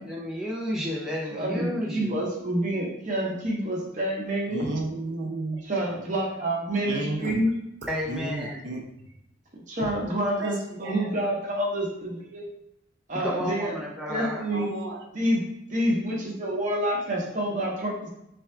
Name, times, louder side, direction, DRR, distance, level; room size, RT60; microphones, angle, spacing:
voice 1, 0.0-2.2 7.9-8.6 13.2-14.4, equal, 5° right, -4 dB, 0.5 m, -32 dB
voice 2, 1.3-4.7 5.7-7.5 9.7-12.5 13.1-13.8 14.1-14.7 15.1-18.1, right 1 dB, 40° right, -2 dB, 1.0 m, -28 dB
voice 3, 4.5-5.7 6.9-7.4 8.1-8.8 9.8-10.0 10.4-11.1 14.5-15.0, right 2 dB, 65° right, 1 dB, 0.6 m, -33 dB
3.4 x 2.3 x 4.3 m, 0.82 s
head